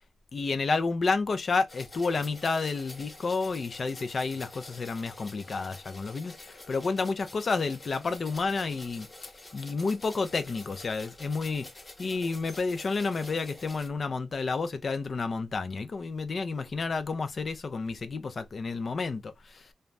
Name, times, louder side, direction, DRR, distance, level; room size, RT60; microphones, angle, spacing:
voice 1, 0.3-9.1 9.5-11.7 12.0-19.7, left 4 dB, 55° left, 0.5 m, -30 dB
sound 1, 1.7-13.9, left 2 dB, 40° left, 0.9 m, -48 dB
2.7 x 2.2 x 3.2 m
cardioid pair, 50°, 0 cm